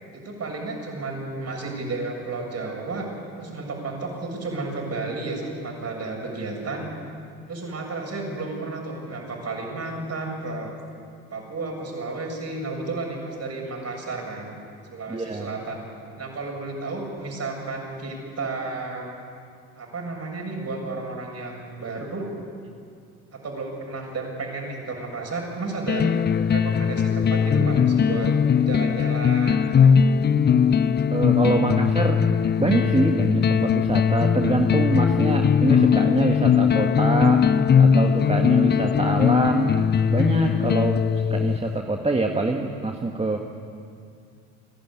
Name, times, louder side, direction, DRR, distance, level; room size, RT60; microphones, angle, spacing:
voice 1, 0.1-3.1 3.4-6.9 7.5-10.7 11.3-14.5 14.9-15.8 16.2-19.1 19.7-22.3 23.3-26.1 26.5-28.3 28.6-29.9, right 3 dB, 35° right, 1 dB, 7.4 m, -32 dB
voice 2, 15.1-15.6 31.1-32.2 32.6-37.5 37.8-39.7 40.1-41.0 41.3-43.4, right 2 dB, 15° right, 3 dB, 1.6 m, -24 dB
sound 1, 25.9-41.8, left 7 dB, 25° left, 0.6 m, -20 dB
30.0 x 11.5 x 10.0 m, 2.3 s
hypercardioid pair, 70°, 42 cm